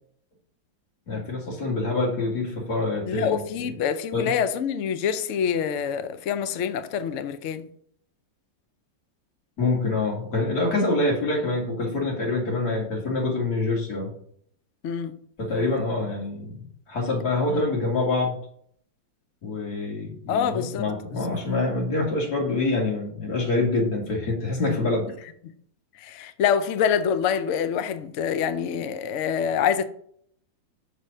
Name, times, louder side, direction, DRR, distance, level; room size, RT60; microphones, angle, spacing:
voice 1, 1.1-3.8 4.1-4.3 9.6-14.1 15.4-18.4 19.4-25.1, left 2 dB, 55° left, 2.5 m, -26 dB
voice 2, 3.1-7.6 14.8-15.1 20.3-20.9 24.8-24.9 26.0-29.8, left 7 dB, 85° left, 0.6 m, -26 dB
6.3 x 4.1 x 6.4 m
omnidirectional pair, 2.1 m